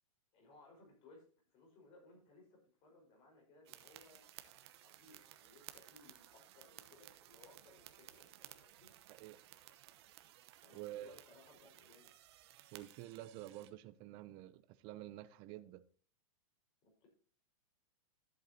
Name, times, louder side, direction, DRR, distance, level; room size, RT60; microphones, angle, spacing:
voice 1, 0.3-1.2 1.5-8.9 10.5-12.1 16.8-17.1, left 2 dB, 30° left, 4.9 m, -64 dB
sound 1, 3.6-13.7, right 14 dB, 50° right, 1.0 m, -58 dB
voice 2, 10.7-11.2 12.7-15.8, right 14 dB, 30° right, 0.5 m, -49 dB
13.5 x 8.2 x 2.8 m
hypercardioid pair, 155°, 18 cm